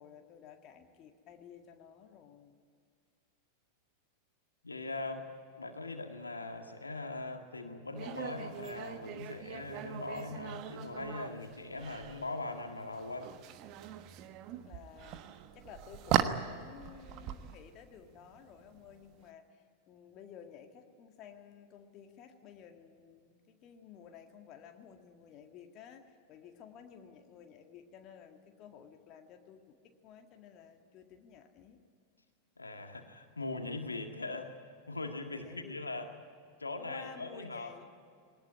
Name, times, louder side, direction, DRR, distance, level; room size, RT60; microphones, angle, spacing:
voice 1, 0.0-2.6 14.1-31.8 35.3-35.8 36.8-37.9, left 7 dB, 35° left, 4 dB, 1.9 m, -54 dB
voice 2, 4.6-5.3 5.6-13.3 32.6-36.1 36.6-37.7, left 2 dB, 80° left, 5 dB, 1.9 m, -41 dB
sound 1, 7.9-19.2, right 10 dB, 40° right, 1.3 m, -39 dB
21.0 x 19.5 x 9.8 m, 2.2 s
figure-of-eight pair, 90°, 0 cm